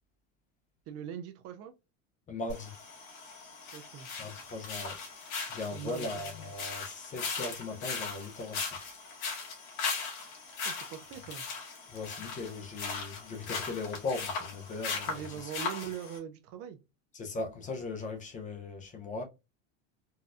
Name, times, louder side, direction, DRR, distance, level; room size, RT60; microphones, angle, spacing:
voice 1, 0.9-1.7 3.7-4.1 5.7-6.1 10.6-11.5 15.1-16.8, right 9 dB, 40° right, 0.4 m, -41 dB
voice 2, 2.3-2.8 4.2-5.0 5.5-8.7 11.9-15.5 17.1-19.2, left 3 dB, 20° left, 0.5 m, -38 dB
sound 1, 2.5-16.2, left 4 dB, 60° left, 1.7 m, -39 dB
4.1 x 2.2 x 2.4 m
supercardioid pair, 135°, 37 cm